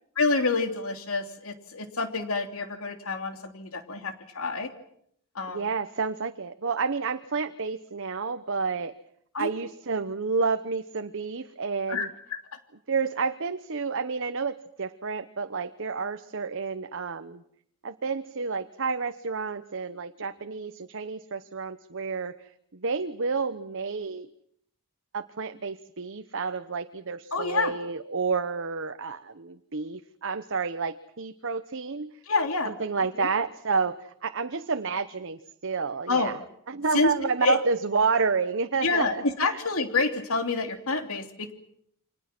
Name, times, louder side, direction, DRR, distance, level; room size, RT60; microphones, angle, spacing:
voice 1, 0.2-4.7 5.3-5.6 9.3-9.5 11.9-12.4 27.3-27.7 32.3-32.8 33.1-33.3 36.1-36.3 36.9-37.1 37.4-37.6 38.8-41.5, left 3 dB, 70° left, 6 dB, 3.1 m, -27 dB
voice 2, 5.5-9.0 9.4-12.1 12.9-17.4 17.8-22.4 22.7-24.3 25.1-32.2 32.6-36.3 36.7-39.2, right 4 dB, 60° right, 9 dB, 1.0 m, -30 dB
29.5 x 25.5 x 6.1 m, 0.70 s
head